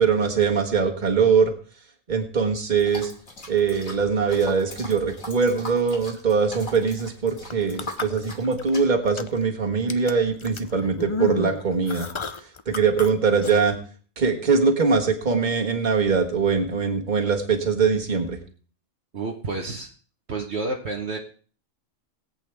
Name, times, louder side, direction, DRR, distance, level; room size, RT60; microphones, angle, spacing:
voice 1, 0.0-1.5 2.1-3.1 3.5-12.1 12.7-13.8 14.2-18.4, right 5 dB, 35° right, 3 dB, 1.7 m, -22 dB
sound 1, 2.8-8.8, left 2 dB, 90° left, 3.2 m, -41 dB
sound 2, 7.4-8.7 9.0-9.5 9.9-13.1 13.4-13.5, left 3 dB, 40° left, 0.4 m, -31 dB
voice 2, 19.1-19.9 20.3-21.2, right 3 dB, 55° right, 0 dB, 1.4 m, -29 dB
21.5 x 8.3 x 3.5 m, 0.41 s
omnidirectional pair, 1.4 m